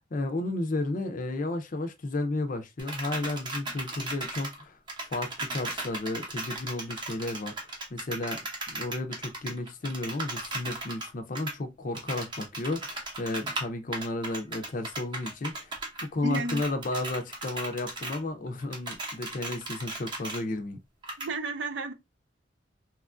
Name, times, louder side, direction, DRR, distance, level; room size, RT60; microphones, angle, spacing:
voice 1, 0.1-4.8 5.1-7.6 7.9-15.7 16.0-20.8, left 2 dB, 45° left, 0.5 m, -33 dB
sound 1, 2.8-4.6 4.9-11.1 11.3-11.5 11.9-13.7 13.9-16.0 16.3-18.2 18.5-20.4 21.0-21.3, right 2 dB, 25° right, 0.7 m, -36 dB
voice 2, 16.2-16.6 21.2-21.9, right 3 dB, 65° right, 0.4 m, -32 dB
3.0 x 2.4 x 2.2 m
head